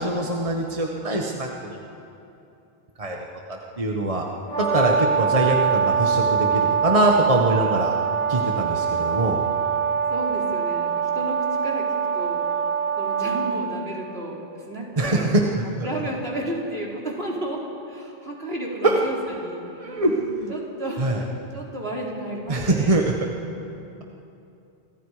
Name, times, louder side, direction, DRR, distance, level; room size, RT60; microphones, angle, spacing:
voice 1, 0.0-1.8 3.0-3.2 3.5-4.2 4.6-7.9 8.3-9.4 15.0-15.9 18.8-19.0 19.8-20.5 21.0-21.2 22.5-23.1, right 2 dB, 35° right, 0 dB, 1.5 m, -23 dB
Brass instrument, 4.5-13.5, right 7 dB, 35° left, 7.8 m, -23 dB
voice 2, 10.1-12.4 13.0-15.3 15.8-20.0 20.5-21.1 21.5-23.0, right 1 dB, 75° right, -2 dB, 4.0 m, -32 dB
27.5 x 24.0 x 5.0 m, 2.8 s
omnidirectional pair, 1.0 m